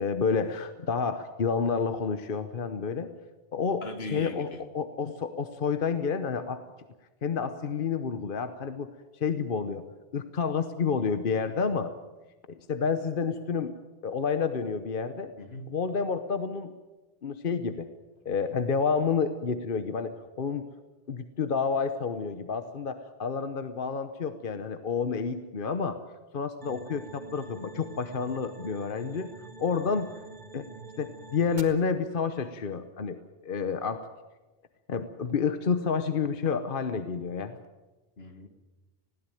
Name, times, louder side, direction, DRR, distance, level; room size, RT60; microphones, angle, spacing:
voice 1, 0.0-3.1 3.5-3.8 4.1-6.6 7.2-9.8 10.1-11.9 12.5-13.7 14.0-15.3 15.7-16.7 17.2-17.9 18.2-20.6 21.1-26.0 26.3-29.3 29.6-30.1 30.5-30.7 31.0-33.2 33.4-34.0 34.9-37.6, left 5 dB, 60° left, 9 dB, 1.1 m, -29 dB
voice 2, 3.8-4.7 15.4-15.8 38.2-38.5, left 2 dB, 80° left, 7 dB, 2.1 m, -39 dB
sound 1, 26.6-31.6, right 3 dB, 45° right, 2.0 m, -46 dB
20.5 x 16.5 x 9.2 m, 1.2 s
omnidirectional pair, 1.0 m